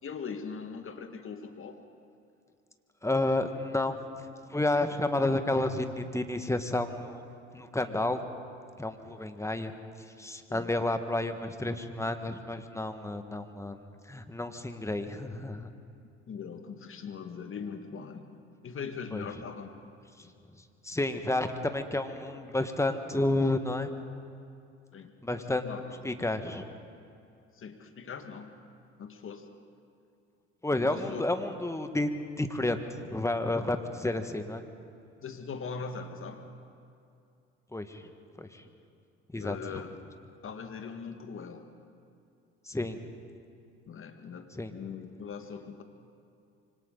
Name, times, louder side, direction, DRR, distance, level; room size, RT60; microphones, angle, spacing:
voice 1, 0.0-1.8 10.5-10.7 16.3-18.3 18.6-19.7 24.9-26.0 27.5-28.5 29.0-29.5 30.9-31.2 35.2-36.6 39.4-39.9 40.4-41.6 43.9-45.8, left 5 dB, 40° left, 6 dB, 2.1 m, -41 dB
voice 2, 3.0-3.9 4.5-7.2 7.5-8.2 8.8-9.7 10.2-13.8 14.1-15.7 19.1-19.3 20.2-20.3 20.8-23.9 25.2-25.7 26.0-26.7 30.6-32.1 32.4-34.6 37.7-38.1 38.4-38.6 39.3-39.8 42.6-43.0 44.5-44.7, left 2 dB, 10° left, 7 dB, 1.7 m, -30 dB
26.0 x 25.0 x 4.1 m, 2.5 s
hypercardioid pair, 60°, 32 cm